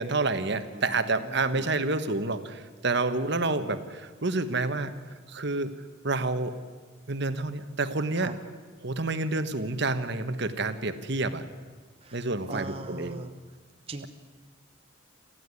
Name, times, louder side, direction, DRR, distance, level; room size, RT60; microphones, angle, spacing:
voice 1, 0.0-4.9 5.3-5.7 6.0-6.6 7.1-8.3 8.8-11.4 12.1-13.2, right 3 dB, 55° right, 10 dB, 1.3 m, -29 dB
voice 2, 0.7-1.7 8.2-8.3 12.0-13.3 13.9-14.1, right 2 dB, 30° right, 5 dB, 1.0 m, -41 dB
26.5 x 15.0 x 9.6 m, 1.5 s
head